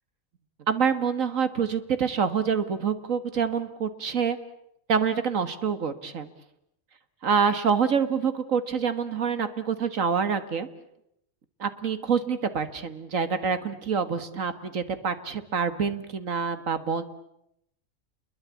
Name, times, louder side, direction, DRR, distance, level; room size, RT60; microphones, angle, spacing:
voice 1, 0.7-4.4 4.9-6.3 7.2-10.7 11.6-17.0, right 6 dB, 70° right, 11 dB, 2.1 m, -26 dB
29.0 x 22.5 x 8.4 m, 0.78 s
omnidirectional pair, 1.4 m